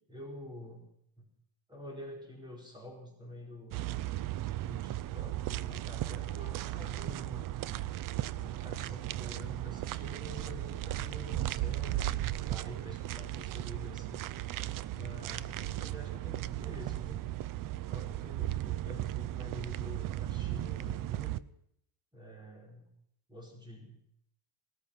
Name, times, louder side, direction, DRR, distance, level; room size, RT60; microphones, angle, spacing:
voice 1, 0.1-0.9 1.2-1.3 1.7-3.8 4.6-7.6 8.3-14.2 14.9-17.2 17.9-21.5 22.1-22.9 23.3-24.0, left 1 dB, 10° right, 0 dB, 4.7 m, -48 dB
sound 1, 3.7-21.4, right 14 dB, 45° right, 0.5 m, -36 dB
18.5 x 14.0 x 5.7 m, 0.72 s
cardioid pair, 140°, 49 cm